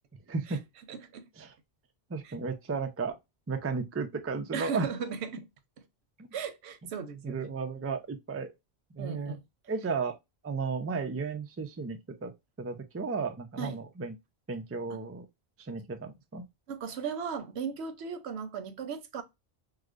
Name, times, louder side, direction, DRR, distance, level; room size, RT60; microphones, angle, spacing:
voice 1, 0.3-0.6 1.4-1.5 2.1-3.2 3.5-4.9 6.2-6.3 7.2-8.5 8.9-9.4 9.7-10.2 10.4-12.3 12.6-14.2 14.5-15.3 15.6-16.4, right 4 dB, 25° right, 0.3 m, -34 dB
voice 2, 0.9-1.3 2.2-2.3 4.5-5.5 5.8-5.9 6.3-7.5 9.0-9.4 13.6-13.8 14.9-15.0 16.7-19.2, right 6 dB, 90° right, 0.9 m, -37 dB
4.7 x 2.1 x 2.4 m
omnidirectional pair, 1.1 m